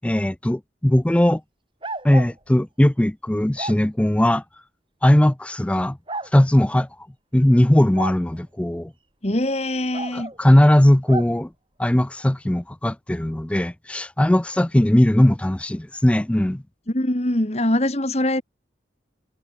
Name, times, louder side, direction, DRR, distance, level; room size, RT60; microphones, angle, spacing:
voice 1, 0.0-1.4 2.0-4.4 5.0-6.0 6.3-6.9 7.3-8.9 10.1-11.5 11.8-16.6, left 1 dB, 5° left, 0.3 m, -19 dB
sound 1, 1.8-2.3 3.6-3.8 5.1-5.2 6.1-6.3 7.9-8.2 9.9-10.4 11.1-11.3, right 2 dB, 25° right, 7.2 m, -31 dB
voice 2, 9.2-10.3 16.9-18.4, left 1 dB, 35° left, 1.9 m, -23 dB
head